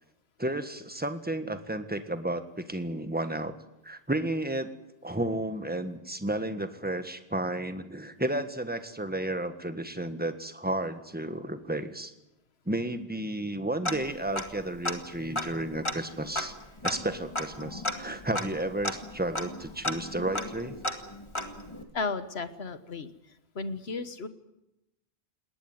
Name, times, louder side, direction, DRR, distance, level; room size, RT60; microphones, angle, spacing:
voice 1, 0.4-3.5 3.8-4.7 5.0-12.1 12.7-16.5 16.8-20.8, right 1 dB, 10° right, 9 dB, 1.6 m, -32 dB
Tick-tock, 13.8-14.6 14.8-14.9 15.3-21.8, left 1 dB, 30° left, 2.1 m, -34 dB
voice 2, 21.9-23.1 23.5-24.3, left 4 dB, 90° left, 12 dB, 1.6 m, -34 dB
21.0 x 19.0 x 9.5 m, 0.91 s
omnidirectional pair, 1.0 m